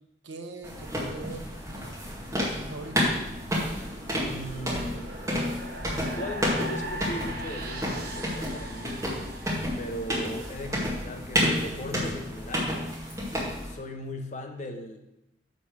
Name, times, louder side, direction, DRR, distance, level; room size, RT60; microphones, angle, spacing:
voice 1, 0.2-1.5 2.4-3.1, right 3 dB, 80° right, 5 dB, 0.9 m, -41 dB
sound 1, 0.6-13.8, equal, 15° right, 1.9 m, -31 dB
sound 2, 1.6-10.5, right 1 dB, 50° right, 1.1 m, -41 dB
voice 2, 4.3-5.2 5.9-9.0 9.8-12.8 13.6-15.0, equal, 40° left, 4 dB, 0.9 m, -38 dB
7.1 x 5.3 x 6.4 m, 0.89 s
head